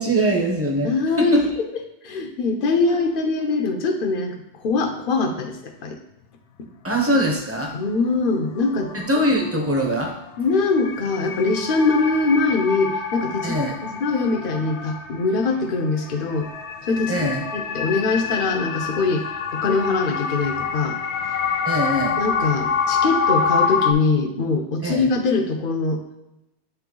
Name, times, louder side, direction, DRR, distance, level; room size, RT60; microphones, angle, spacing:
voice 1, 0.0-0.9 1.2-1.5 2.8-3.0 6.8-7.7 8.9-10.1 13.4-13.7 17.1-17.4 21.6-22.2 24.8-25.1, right 1 dB, 15° right, 2 dB, 0.8 m, -22 dB
voice 2, 0.8-1.5 2.0-6.0 7.7-8.9 10.4-16.5 16.9-21.0 22.2-26.0, left 3 dB, 55° left, 4 dB, 0.9 m, -23 dB
sound 1, 4.9-5.0 8.1-8.2 8.6-23.9, left 6 dB, 80° left, 0.9 m, -27 dB
8.0 x 3.3 x 3.8 m, 0.86 s
omnidirectional pair, 1.1 m